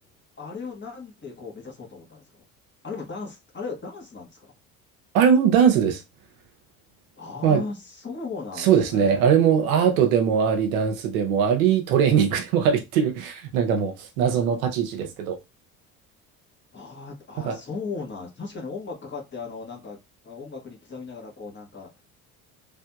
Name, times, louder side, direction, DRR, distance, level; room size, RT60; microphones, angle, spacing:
voice 1, 0.4-2.2 2.8-4.5 7.2-9.3 16.7-20.0 20.2-22.0, left 4 dB, 25° left, 1.4 m, -37 dB
voice 2, 5.1-6.0 7.4-7.6 8.6-15.4 17.5-17.6, right 7 dB, 85° right, 0.7 m, -21 dB
3.2 x 2.7 x 2.3 m
hypercardioid pair, 70°, 41 cm